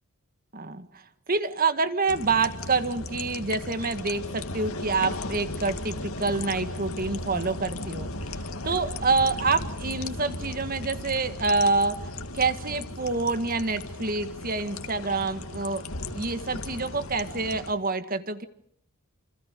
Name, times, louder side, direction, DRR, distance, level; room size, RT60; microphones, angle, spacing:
voice 1, 0.5-1.0 1.3-8.1 8.6-15.8 16.1-18.5, right 3 dB, 45° right, 11 dB, 1.7 m, -27 dB
sound 1, 2.1-17.7, left 2 dB, 90° left, 2.3 m, -36 dB
28.5 x 26.5 x 5.1 m, 0.65 s
head